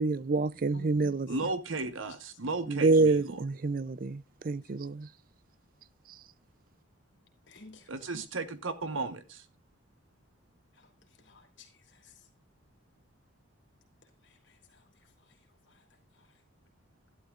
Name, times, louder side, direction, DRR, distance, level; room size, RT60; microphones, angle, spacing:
voice 1, 0.0-1.5 2.7-5.1, right 3 dB, 45° right, 0.4 m, -27 dB
voice 2, 0.7-1.1 7.5-8.1 10.8-10.9 11.2-12.1 14.2-14.3 14.7-14.8, left 1 dB, 65° left, 2.9 m, -53 dB
voice 3, 1.3-3.4 7.9-9.4, right 3 dB, 85° right, 1.1 m, -35 dB
13.5 x 11.5 x 2.5 m
head